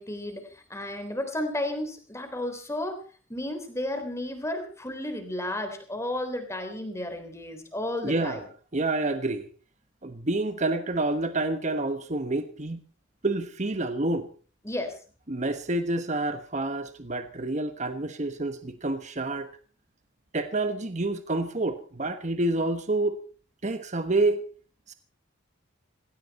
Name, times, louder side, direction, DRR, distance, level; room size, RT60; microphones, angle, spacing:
voice 1, 0.0-3.0 3.3-8.4 14.6-15.0, left 1 dB, 15° left, 3.7 m, -33 dB
voice 2, 8.0-8.4 8.7-9.5 10.0-12.8 13.2-14.3 15.3-19.5 20.3-23.2 23.6-24.4 24.9-25.0, right 2 dB, 35° right, 1.2 m, -28 dB
18.5 x 18.0 x 4.3 m
head